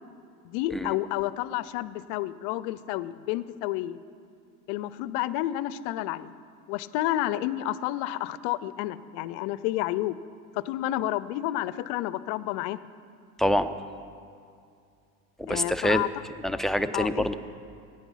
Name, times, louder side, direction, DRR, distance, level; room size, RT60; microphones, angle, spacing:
voice 1, 0.4-4.0 4.7-6.3 6.7-10.2 10.6-12.8 15.5-16.1 16.9-17.3, left 15 dB, 65° left, 17 dB, 0.7 m, -30 dB
voice 2, 13.4-13.7 15.4-16.0 16.4-17.3, equal, ahead, 11 dB, 0.6 m, -25 dB
16.5 x 10.0 x 5.7 m, 2.4 s
hypercardioid pair, 75°, 44 cm